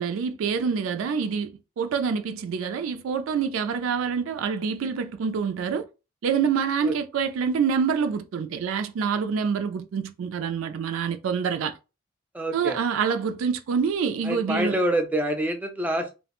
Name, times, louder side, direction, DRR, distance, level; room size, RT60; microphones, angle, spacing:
voice 1, 0.0-5.9 6.2-11.8 12.5-14.8, right 6 dB, 85° right, 0.3 m, -26 dB
voice 2, 12.3-12.8 14.3-16.1, right 1 dB, 10° right, 0.3 m, -26 dB
2.4 x 2.1 x 2.9 m
head